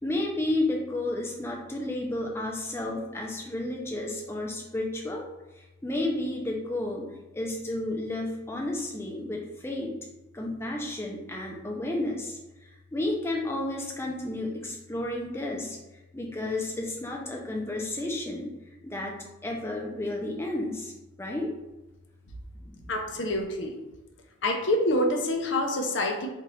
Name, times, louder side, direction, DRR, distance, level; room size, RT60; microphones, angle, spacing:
voice 1, 0.0-5.3 5.5-7.1 7.3-9.9 10.3-15.8 16.1-18.5 18.8-19.2 19.4-21.5 22.6-22.8 23.2-23.3, left 1 dB, 10° left, -1 dB, 0.5 m, -32 dB
voice 2, 22.9-23.7 24.4-26.3, left 1 dB, 60° left, 2 dB, 0.6 m, -26 dB
4.4 x 2.5 x 3.1 m, 1.0 s
head